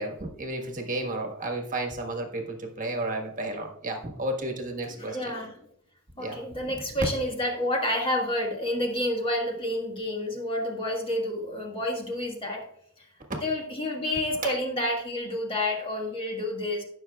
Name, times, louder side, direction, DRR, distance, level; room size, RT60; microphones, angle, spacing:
voice 1, 0.0-5.3 6.2-7.0 13.3-13.4 14.4-14.5, right 1 dB, 35° right, 3 dB, 1.5 m, -33 dB
voice 2, 4.9-5.5 6.2-12.6 13.0-13.1 13.4-16.8, left 1 dB, 25° left, 0 dB, 1.6 m, -29 dB
18.0 x 6.1 x 2.4 m, 0.73 s
head